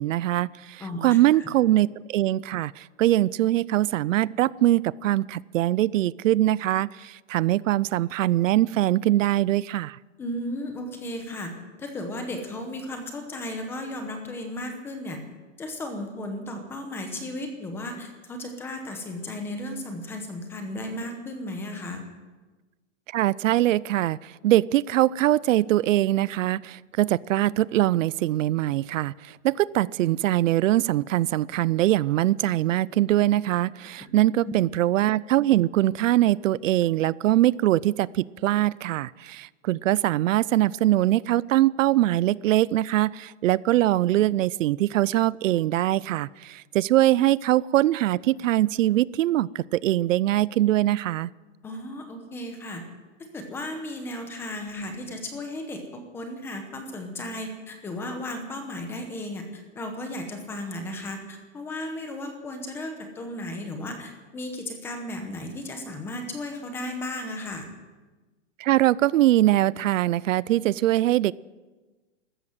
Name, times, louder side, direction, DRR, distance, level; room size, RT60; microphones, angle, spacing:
voice 1, 0.0-10.0 23.1-51.3 68.6-71.3, right 14 dB, 80° right, 22 dB, 0.5 m, -22 dB
voice 2, 0.8-1.5 10.2-11.5 11.8-15.2 15.6-22.0 34.0-34.1 34.4-34.5 51.6-52.8 53.2-67.7, left 1 dB, 5° left, 5 dB, 0.9 m, -35 dB
14.0 x 13.5 x 7.9 m, 1.2 s
supercardioid pair, 180°, 38 cm